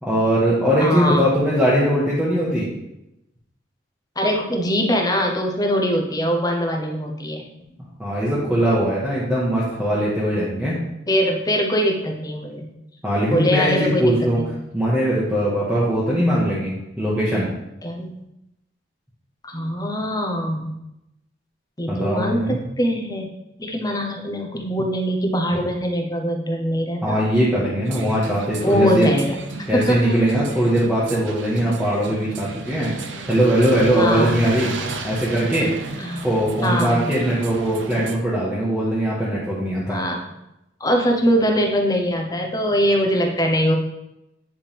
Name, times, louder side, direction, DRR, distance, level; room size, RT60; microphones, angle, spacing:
voice 1, 0.0-2.7 8.0-10.7 13.0-14.4 14.7-17.5 21.9-22.6 27.0-29.1 29.7-32.9 33.3-34.7 35.0-35.7 36.2-40.0, equal, 5° right, -8 dB, 1.3 m, -20 dB
voice 2, 0.8-1.3 4.2-7.4 11.1-12.7 13.3-14.5 17.8-18.1 19.4-20.7 21.8-23.3 23.6-27.2 28.6-29.4 29.7-30.2 34.0-34.3 36.0-36.3 36.6-37.1 39.9-40.2 40.8-43.7, equal, 20° left, 1 dB, 0.9 m, -22 dB
sound 1, 27.8-38.2, right 3 dB, 75° right, 0.7 m, -33 dB
10.0 x 3.6 x 3.5 m, 0.88 s
head